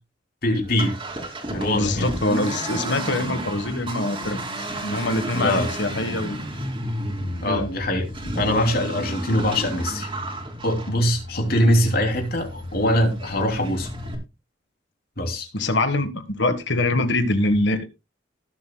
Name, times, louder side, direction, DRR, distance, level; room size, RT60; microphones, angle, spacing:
voice 1, 0.4-1.0 1.5-2.1 5.3-5.7 7.4-8.1 8.3-10.1 10.6-13.9 15.2-15.5, left 1 dB, 55° left, 3.0 m, -22 dB
Accelerating revving vroom, 0.6-14.1, right 1 dB, 30° right, 2.8 m, -32 dB
voice 2, 1.7-4.4 4.8-6.4 7.5-7.7 15.5-17.9, left 2 dB, 70° left, 1.5 m, -24 dB
19.5 x 7.5 x 2.3 m
head